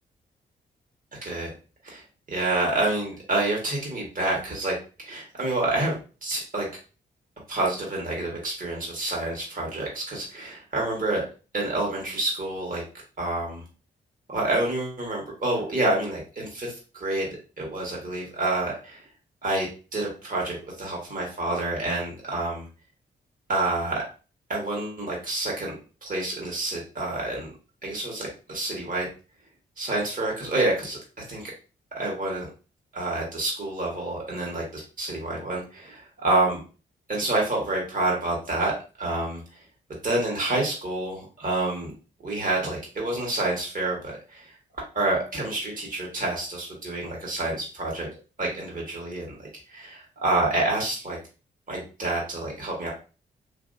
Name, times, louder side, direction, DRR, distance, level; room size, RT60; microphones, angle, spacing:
voice 1, 1.8-4.8 5.1-6.7 7.5-11.2 11.5-12.8 13.2-13.6 14.3-19.0 19.4-22.6 23.5-24.0 24.5-25.7 26.0-27.5 27.8-29.1 29.8-31.0 31.3-31.5 31.9-32.5 32.9-36.6 37.1-38.7 39.0-39.4 40.0-41.9 42.2-44.5 44.9-48.1 48.4-51.2 51.7-52.9, right 2 dB, 40° right, -3 dB, 1.5 m, -28 dB
2.9 x 2.6 x 2.6 m, 0.35 s
hypercardioid pair, 40°, 21 cm